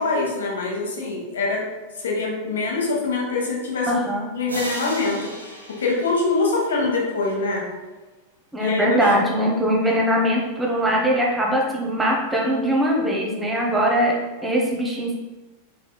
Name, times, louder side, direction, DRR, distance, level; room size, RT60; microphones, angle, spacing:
voice 1, 0.0-1.6 2.0-4.0 4.3-5.2 5.8-7.6 8.6-9.0, left 3 dB, 65° left, -2 dB, 1.1 m, -24 dB
voice 2, 3.9-4.3 8.5-14.1 14.4-15.1, equal, 10° right, -2 dB, 0.9 m, -21 dB
sound 1, 4.5-7.2, right 1 dB, 80° right, 0.8 m, -36 dB
5.0 x 4.6 x 2.2 m, 1.2 s
figure-of-eight pair, 90°, 0 cm